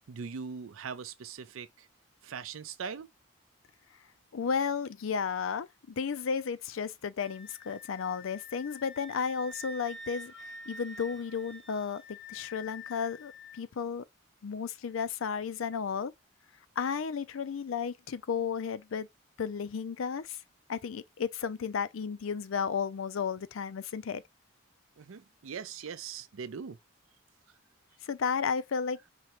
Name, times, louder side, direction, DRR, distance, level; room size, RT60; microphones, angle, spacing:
voice 1, 0.1-1.9 2.2-3.1 25.0-26.8, right 6 dB, 85° right, 0.5 m, -41 dB
voice 2, 4.3-14.0 14.4-16.1 16.8-19.1 19.4-20.4 20.7-24.2 28.0-29.0, left 6 dB, 80° left, 0.4 m, -33 dB
Wind instrument woodwind instrument, 7.2-13.6, left 2 dB, 60° left, 1.3 m, -47 dB
4.5 x 2.9 x 3.0 m
head